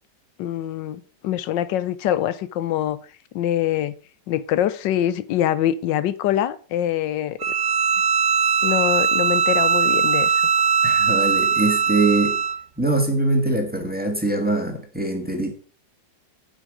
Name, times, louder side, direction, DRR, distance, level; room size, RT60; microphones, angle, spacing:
voice 1, 0.4-3.0 3.3-4.0 4.3-7.4 8.6-10.5, left 11 dB, 85° left, 15 dB, 1.4 m, -24 dB
Bowed string instrument, 7.4-12.6, right 6 dB, 80° right, 0.5 m, -20 dB
voice 2, 10.8-12.4 12.8-15.5, right 2 dB, 5° right, 4 dB, 1.7 m, -23 dB
8.6 x 8.5 x 5.0 m, 0.40 s
omnidirectional pair, 1.9 m